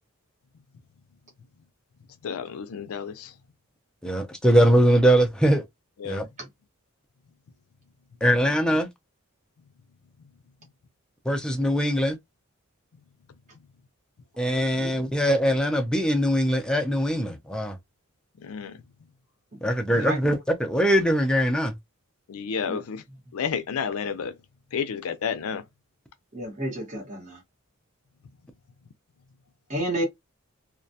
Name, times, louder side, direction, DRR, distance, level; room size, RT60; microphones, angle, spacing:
voice 1, 2.2-3.3 6.0-6.3 18.4-18.8 20.0-20.1 22.3-23.0 23.3-24.3 24.7-25.6, left 6 dB, 75° left, 0.4 m, -31 dB
voice 2, 4.0-5.6 6.0-6.2 8.2-8.9 11.3-12.2 14.4-17.8 19.6-21.7, equal, 5° left, 0.4 m, -22 dB
voice 3, 14.8-15.2 20.0-20.2 22.7-22.8 26.3-27.4 29.7-30.0, right 1 dB, 35° right, 1.1 m, -30 dB
2.3 x 2.2 x 2.6 m
head